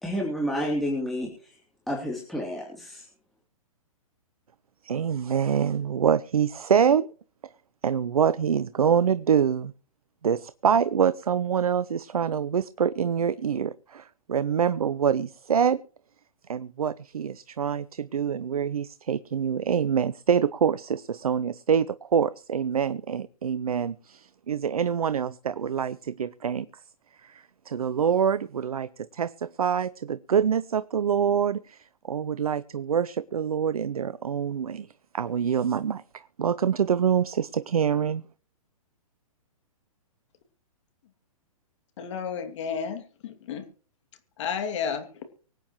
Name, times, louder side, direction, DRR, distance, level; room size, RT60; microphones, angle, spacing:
voice 1, 0.0-1.6 1.9-3.0, equal, ahead, -3 dB, 3.2 m, -30 dB
voice 2, 4.8-7.1 7.8-9.7 10.2-15.8 16.5-26.7 27.2-34.9 35.1-38.2, right 7 dB, 80° right, 16 dB, 0.7 m, -25 dB
voice 3, 42.0-43.6 44.4-45.1, left 7 dB, 55° left, 7 dB, 2.6 m, -32 dB
24.5 x 9.1 x 3.1 m, 0.42 s
hypercardioid pair, 120°, 18 cm